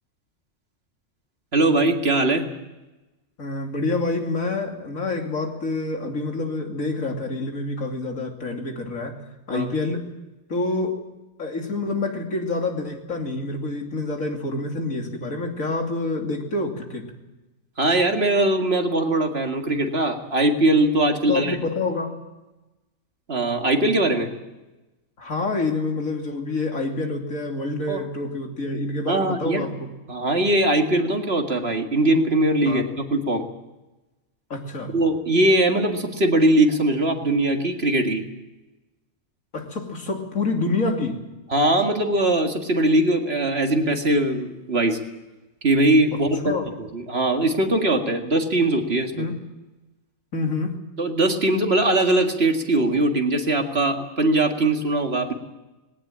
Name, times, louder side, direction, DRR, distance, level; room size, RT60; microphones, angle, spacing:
voice 1, 1.5-2.5 9.5-9.7 17.8-21.6 23.3-24.3 27.9-28.0 29.1-29.7 30.1-33.4 34.9-38.2 41.5-45.0 45.6-49.3 51.0-55.3, right 1 dB, 50° right, 4 dB, 2.2 m, -21 dB
voice 2, 3.4-9.2 9.5-10.1 10.5-11.0 11.4-17.1 21.2-22.1 25.2-29.9 32.7-32.8 34.5-34.9 39.5-41.2 46.1-46.7 49.1-49.4 50.3-50.8, left 3 dB, 85° left, 2 dB, 3.2 m, -27 dB
20.0 x 17.5 x 8.8 m, 1.1 s
omnidirectional pair, 1.4 m